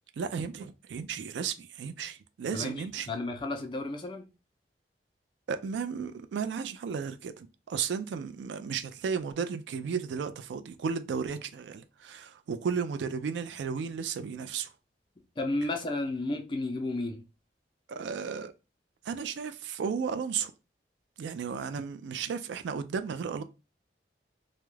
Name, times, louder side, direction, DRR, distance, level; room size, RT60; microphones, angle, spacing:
voice 1, 0.2-3.1 5.5-14.7 17.9-18.5 19.0-20.5 21.2-23.4, right 6 dB, 85° right, 0.3 m, -34 dB
voice 2, 2.5-4.3 15.4-17.2, left 2 dB, 25° left, 0.4 m, -33 dB
2.3 x 2.0 x 3.1 m
head